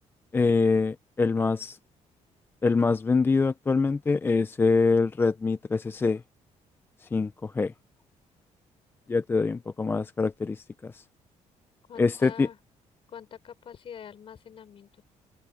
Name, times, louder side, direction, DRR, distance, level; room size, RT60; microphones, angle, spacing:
voice 1, 0.3-1.8 2.6-6.2 7.1-7.7 9.1-11.0 12.0-12.5, left 4 dB, 20° left, 0.4 m, -24 dB
voice 2, 11.9-12.6 13.1-15.1, left 8 dB, 45° left, 5.1 m, -44 dB
cardioid pair, 145°, 12 cm